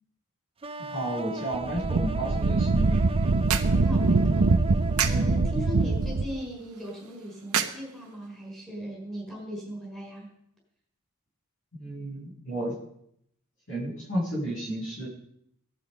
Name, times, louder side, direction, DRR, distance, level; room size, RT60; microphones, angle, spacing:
sound 1, 0.6-6.4, right 3 dB, 25° right, 0.6 m, -37 dB
voice 1, 0.9-3.0 11.7-12.8 13.7-15.1, right 1 dB, 60° left, -1 dB, 6.8 m, -32 dB
Wind, 1.5-6.4, right 3 dB, 70° right, 0.7 m, -24 dB
sound 2, 2.6-8.5, right 8 dB, 85° right, 1.3 m, -35 dB
voice 2, 3.7-4.6 5.1-10.3, equal, ahead, -2 dB, 5.0 m, -38 dB
17.0 x 12.0 x 5.3 m, 0.73 s
head